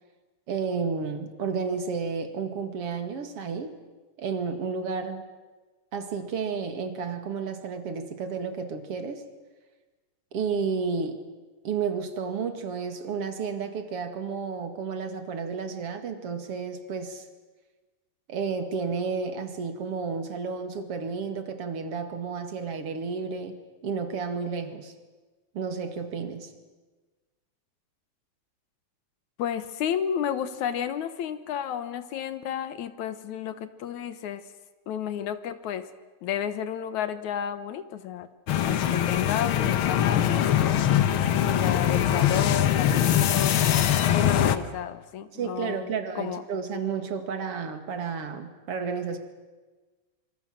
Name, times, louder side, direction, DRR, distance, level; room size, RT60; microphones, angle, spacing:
voice 1, 0.5-3.7 4.2-5.3 5.9-9.2 10.3-11.2 11.6-17.3 18.3-24.9 25.5-26.5 45.3-49.2, right 5 dB, 55° right, 8 dB, 3.0 m, -31 dB
voice 2, 29.4-34.4 34.9-35.9 36.2-38.3 38.7-40.8 41.2-43.9 44.1-46.4, left 9 dB, 80° left, 12 dB, 2.6 m, -32 dB
sound 1, 38.5-44.6, left 10 dB, 60° left, 1.5 m, -22 dB
26.5 x 25.5 x 7.7 m, 1.2 s
omnidirectional pair, 3.4 m